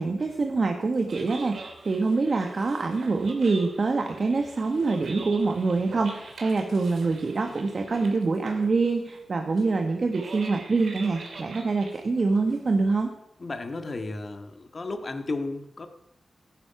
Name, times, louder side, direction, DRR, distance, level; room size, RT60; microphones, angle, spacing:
voice 1, 0.0-13.1, right 3 dB, 55° right, 4 dB, 1.3 m, -25 dB
sound 1, 0.8-13.1, right 3 dB, 75° right, 2.7 m, -44 dB
voice 2, 13.4-15.9, left 2 dB, 50° left, 7 dB, 1.7 m, -33 dB
15.0 x 11.0 x 5.8 m, 0.82 s
cardioid pair, 75°, 0 cm